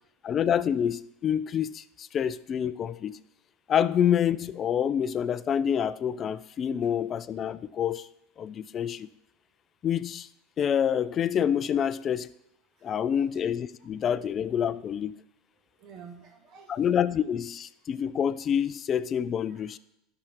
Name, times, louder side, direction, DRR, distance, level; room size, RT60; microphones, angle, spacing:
voice 1, 0.2-3.2 3.7-8.1 8.4-9.1 9.8-10.3 10.6-12.3 12.8-15.2 16.7-19.8, left 8 dB, 35° left, 15 dB, 0.4 m, -27 dB
voice 2, 12.8-13.3 14.2-14.3 15.8-16.9 19.5-19.8, right 6 dB, 45° right, 3 dB, 1.6 m, -51 dB
12.5 x 6.0 x 3.6 m, 0.84 s
supercardioid pair, 120°, 0 cm